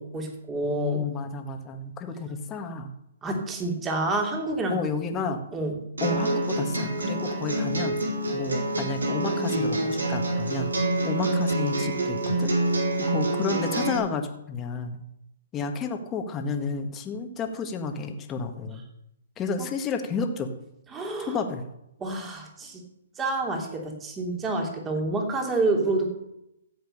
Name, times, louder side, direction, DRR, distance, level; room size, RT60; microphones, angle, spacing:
voice 1, 0.0-1.0 3.2-4.8 5.5-5.8 20.9-21.4 22.0-22.8 23.2-26.1, right 2 dB, 15° right, 2 dB, 3.1 m, -28 dB
voice 2, 0.6-2.9 4.7-5.4 6.0-8.0 8.3-10.7 11.0-12.5 13.0-15.0 15.5-18.8 19.4-20.5 21.2-21.6, left 4 dB, 20° left, 5 dB, 1.9 m, -31 dB
sound 1, 6.0-14.0, right 1 dB, 85° right, 4.4 m, -27 dB
14.5 x 8.0 x 6.8 m, 0.83 s
hypercardioid pair, 135°, 0 cm